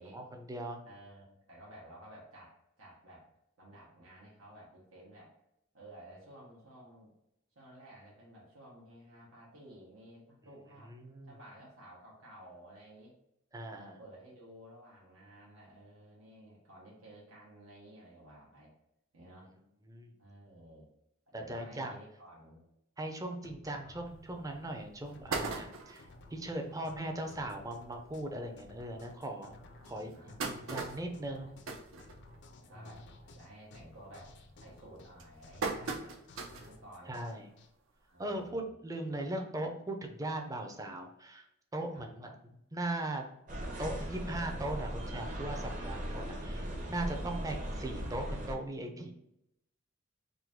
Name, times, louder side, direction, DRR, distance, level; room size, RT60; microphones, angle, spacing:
voice 1, 0.1-0.8 10.9-11.3 13.5-14.0 19.9-20.2 21.3-21.9 23.0-26.0 26.3-29.5 29.8-30.2 30.4-31.8 32.7-32.9 35.7-35.8 37.1-37.5 38.2-41.5 41.7-42.4 42.7-43.3 43.8-49.1, right 1 dB, 15° right, 3 dB, 0.5 m, -39 dB
voice 2, 0.8-3.3 3.6-5.3 5.7-7.1 7.5-10.9 11.2-13.1 13.7-18.7 19.1-19.5 20.2-20.9 21.3-22.6 26.6-26.8 29.7-30.6 31.3-31.5 32.6-34.3 34.6-36.2 36.6-37.2 38.0-38.7 41.9-42.1, right 1 dB, 85° right, -5 dB, 1.1 m, -54 dB
sound 1, 23.4-37.7, left 2 dB, 60° left, 0.5 m, -56 dB
sound 2, 24.2-24.3 24.7-24.8 25.1-26.1 26.7-26.8 27.1-27.2 27.5-27.7 28.4-28.5 29.0-29.1 29.8-32.7 33.0-33.4 33.7-34.1 34.7-36.8 37.2-37.3 38.5-38.6, right 4 dB, 70° right, 0.6 m, -39 dB
sound 3, 43.5-48.5, equal, 40° right, 0.8 m, -38 dB
3.8 x 2.7 x 3.5 m, 0.82 s
head